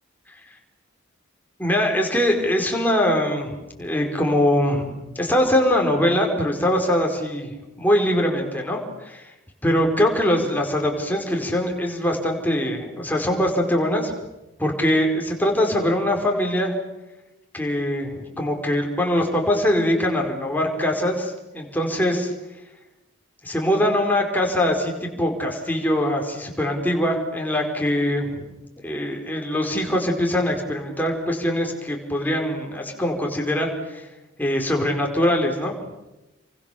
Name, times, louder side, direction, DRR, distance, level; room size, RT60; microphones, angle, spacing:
voice 1, 1.6-4.9 5.1-9.3 9.6-14.1 14.6-16.7 17.5-22.3 23.4-28.4 28.8-34.1 34.4-35.7, left 1 dB, 10° left, 1 dB, 4.8 m, -22 dB
29.5 x 24.0 x 7.1 m, 1.0 s
head